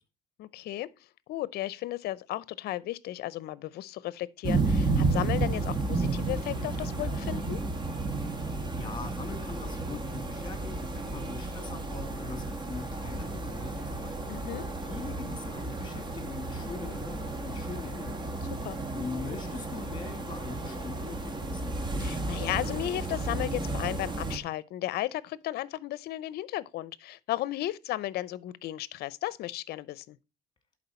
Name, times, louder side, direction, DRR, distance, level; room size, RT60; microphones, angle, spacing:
voice 1, 0.4-0.9 1.3-7.6 14.3-14.6 18.6-18.8 22.0-30.2, left 15 dB, 70° left, 0.6 m, -34 dB
sound 1, 4.4-24.4, right 3 dB, 25° right, 1.4 m, -32 dB
voice 2, 8.7-14.2 14.8-18.3 18.9-21.7, left 4 dB, 25° left, 2.4 m, -42 dB
11.0 x 4.3 x 4.2 m
cardioid pair, 110°, 17 cm